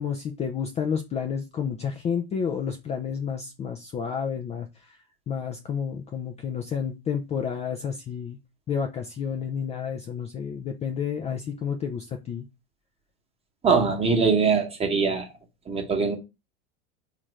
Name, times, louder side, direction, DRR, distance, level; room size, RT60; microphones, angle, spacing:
voice 1, 0.0-5.0 5.3-8.4 8.7-12.5, left 7 dB, 20° left, 0.4 m, -30 dB
voice 2, 13.6-15.3 15.7-16.2, right 5 dB, 20° right, 1.0 m, -22 dB
4.1 x 2.5 x 3.1 m
hypercardioid pair, 105°, 30 cm